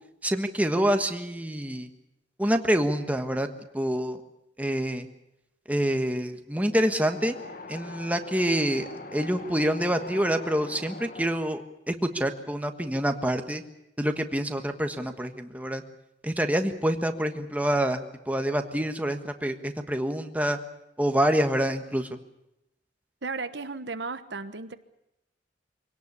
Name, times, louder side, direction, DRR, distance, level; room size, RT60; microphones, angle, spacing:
voice 1, 0.2-1.9 2.4-3.5 3.7-4.2 4.6-5.1 5.7-7.4 7.7-11.6 11.9-13.6 14.0-15.8 16.2-20.6 21.0-22.1, equal, 10° right, 6 dB, 1.4 m, -26 dB
Wind, 6.7-11.3, left 3 dB, 50° left, 1.7 m, -42 dB
voice 2, 23.2-24.7, right 4 dB, 75° right, 10 dB, 1.2 m, -34 dB
24.0 x 18.0 x 8.5 m, 0.87 s
head